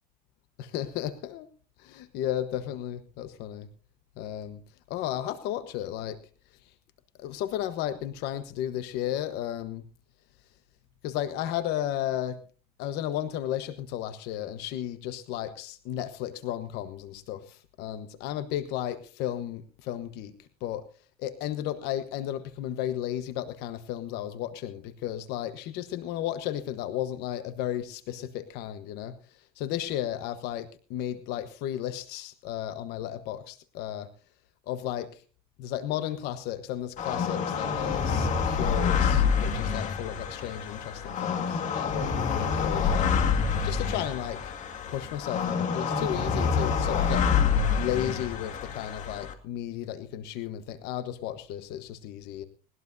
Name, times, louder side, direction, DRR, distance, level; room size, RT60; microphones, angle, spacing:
voice 1, 0.6-1.5 1.8-3.7 4.2-4.6 4.9-6.2 7.2-9.8 11.0-12.4 12.8-20.9 21.2-29.2 29.6-34.1 34.7-35.2 35.6-42.1 42.4-43.1 43.6-44.5 44.9-47.3 47.7-52.5, left 11 dB, 60° left, 11 dB, 1.2 m, -34 dB
sound 1, 37.0-49.3, left 6 dB, 40° left, 2.2 m, -27 dB
20.0 x 19.5 x 2.7 m, 0.38 s
cardioid pair, 135°, 19 cm